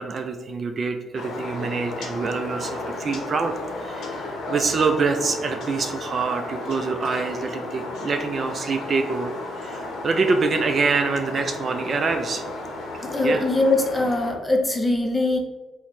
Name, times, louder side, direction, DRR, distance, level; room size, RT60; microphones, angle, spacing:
voice 1, 0.0-4.2 4.5-9.3 9.6-12.4 13.2-13.4, right 4 dB, 45° right, 6 dB, 0.3 m, -25 dB
sound 1, 1.2-14.3, left 2 dB, 75° left, 0.6 m, -34 dB
voice 2, 13.0-15.4, left 2 dB, 10° left, 2 dB, 0.6 m, -22 dB
2.9 x 2.1 x 4.0 m, 1.2 s
cardioid pair, 90°, 0 cm